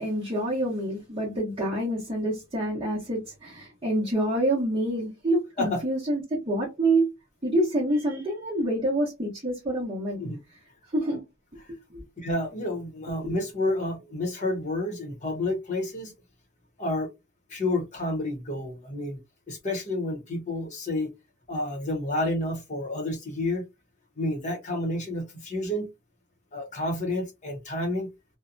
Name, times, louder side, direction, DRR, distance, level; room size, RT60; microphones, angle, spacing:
voice 1, 0.0-7.1 7.4-10.2 10.9-11.2 11.9-12.0 13.2-13.3, right 1 dB, 25° right, 0.8 m, -27 dB
voice 2, 12.2-16.1 16.8-17.1 17.5-19.2 19.5-21.1 21.5-23.6 24.2-25.9 26.5-28.1, left 1 dB, 35° left, 0.9 m, -30 dB
2.6 x 2.1 x 2.5 m
head